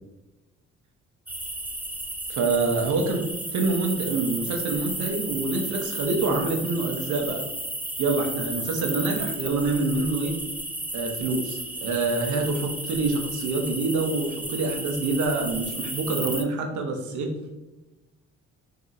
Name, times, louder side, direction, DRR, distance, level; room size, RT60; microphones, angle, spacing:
sound 1, 1.3-16.4, right 1 dB, 5° right, 0.4 m, -33 dB
voice 1, 2.3-3.2 3.5-7.4 8.0-10.4 10.9-17.3, right 3 dB, 75° right, 3 dB, 0.9 m, -26 dB
3.8 x 3.5 x 2.7 m, 1.1 s
cardioid pair, 90°, 30 cm